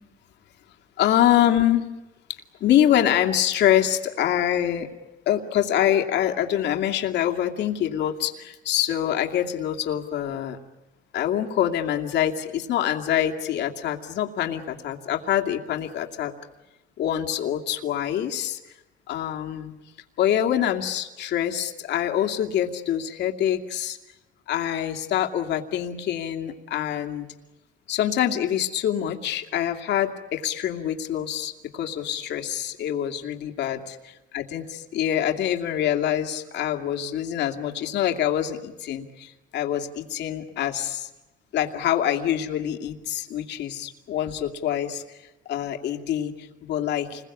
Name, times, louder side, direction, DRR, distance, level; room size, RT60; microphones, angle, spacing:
voice 1, 1.0-1.9 2.6-4.9 5.3-10.6 11.1-16.3 17.0-18.6 19.1-19.7 20.2-24.0 24.5-27.3 27.9-33.8 34.3-41.1 41.5-45.2 45.5-47.2, left 11 dB, 60° left, 3 dB, 2.5 m, -25 dB
28.5 x 21.5 x 8.5 m, 1.0 s
cardioid pair, 125°, 20 cm